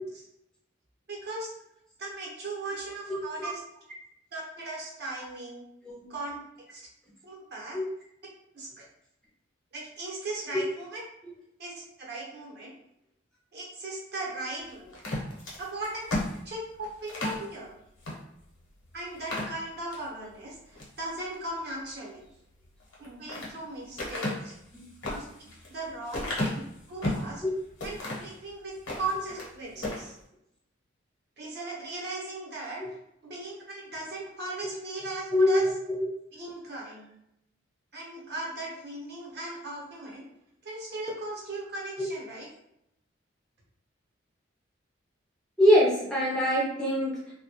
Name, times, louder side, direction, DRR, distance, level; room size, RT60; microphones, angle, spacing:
voice 1, 1.1-1.5 2.0-3.6 4.3-5.7 6.1-6.8 7.2-7.8 8.5-8.9 9.7-11.0 11.6-12.7 13.5-14.9 15.6-16.0 16.4-17.7 18.9-22.3 23.0-24.5 25.0-27.4 27.8-30.2 31.4-32.8 33.2-35.6 36.3-37.1 37.9-40.3 40.6-42.5, right 2 dB, 50° right, -3 dB, 0.7 m, -38 dB
voice 2, 3.1-3.5 6.0-6.1 7.7-7.8 10.5-10.6 24.7-24.8 27.4-27.5 35.3-35.7 45.6-47.3, equal, 5° left, -5 dB, 0.4 m, -23 dB
sound 1, 14.9-17.4 18.0-18.2 18.6-18.7 19.1-20.1 20.5-21.0 22.8-23.5 24.0-27.3 27.8-28.3 28.7-29.5 29.8-30.1, left 1 dB, 80° left, 0.8 m, -33 dB
2.2 x 2.1 x 2.8 m, 0.79 s
head